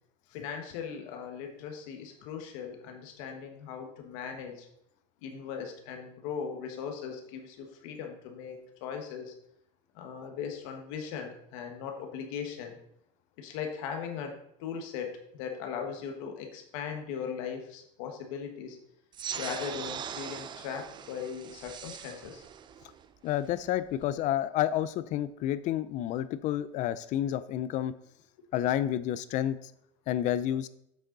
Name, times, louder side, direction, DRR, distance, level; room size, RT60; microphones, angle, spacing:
voice 1, 0.3-4.7 5.2-9.3 9.9-12.8 13.4-14.3 14.6-18.8 19.3-22.4, left 7 dB, 80° left, 4 dB, 1.5 m, -39 dB
sound 1, 19.1-24.1, right 8 dB, 25° right, 0.5 m, -41 dB
voice 2, 23.2-27.9 28.5-29.6 30.1-30.7, left 12 dB, 45° left, 16 dB, 0.5 m, -30 dB
8.2 x 6.5 x 4.0 m, 0.74 s
cardioid pair, 140°, 17 cm